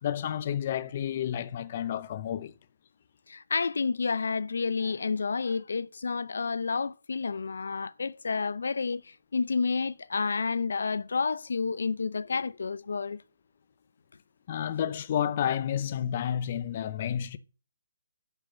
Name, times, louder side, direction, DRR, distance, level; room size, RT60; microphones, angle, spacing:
voice 1, 0.0-2.5 14.5-17.4, left 9 dB, 40° left, 0.7 m, -30 dB
voice 2, 3.3-13.2, left 4 dB, 80° left, 0.6 m, -30 dB
10.0 x 5.6 x 7.3 m
hypercardioid pair, 160°, 0 cm